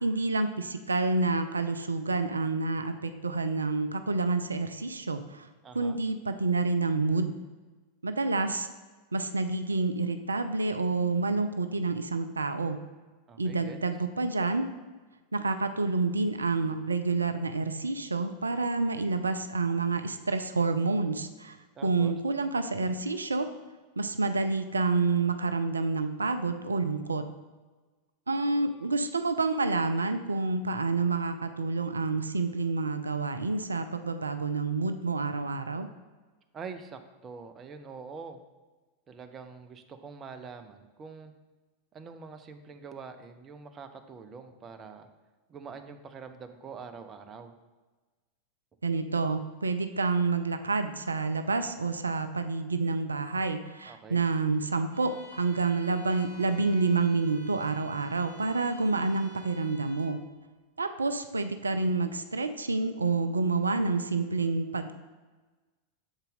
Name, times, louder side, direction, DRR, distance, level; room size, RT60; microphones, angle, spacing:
voice 1, 0.0-5.5 5.7-7.4 8.0-8.7 9.1-12.8 13.4-14.6 15.3-21.6 21.8-23.5 24.0-27.2 28.3-35.9 48.8-60.2 60.8-65.0, right 3 dB, 75° right, 9 dB, 0.4 m, -28 dB
voice 2, 5.6-6.0 13.3-13.8 21.8-22.1 36.5-38.4 39.1-41.3 41.9-45.1 45.5-47.5 53.9-54.2, right 5 dB, 25° right, 7 dB, 0.6 m, -45 dB
Bowed string instrument, 54.9-60.2, equal, 70° left, 2.0 m, -51 dB
7.1 x 3.9 x 4.0 m, 1.3 s
figure-of-eight pair, 90°, 0 cm